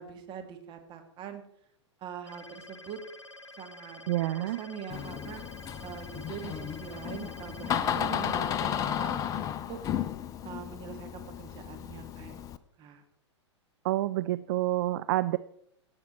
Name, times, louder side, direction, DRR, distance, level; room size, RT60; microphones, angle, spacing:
voice 1, 0.0-1.4 2.0-3.0 3.6-5.4 5.8-9.8 10.4-12.4 12.8-13.0, right 8 dB, 30° right, 5 dB, 2.0 m, -43 dB
sound 1, 2.3-9.1, left 2 dB, 85° left, 0.9 m, -49 dB
voice 2, 4.1-4.6 13.8-15.4, right 16 dB, 50° right, 14 dB, 0.4 m, -28 dB
Door, 4.9-12.6, left 9 dB, 25° left, 0.6 m, -34 dB
17.0 x 7.3 x 4.4 m, 0.70 s
figure-of-eight pair, 105°, 15 cm